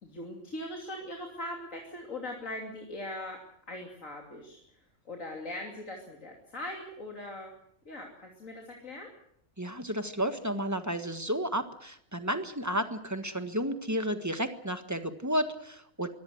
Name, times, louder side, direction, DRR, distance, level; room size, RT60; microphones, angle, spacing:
voice 1, 0.0-3.4 3.7-4.6 5.0-7.5 7.8-9.1, left 1 dB, 75° left, 1 dB, 3.3 m, -40 dB
voice 2, 9.6-16.1, equal, 15° right, 8 dB, 1.5 m, -32 dB
23.5 x 17.5 x 7.9 m, 0.69 s
omnidirectional pair, 1.4 m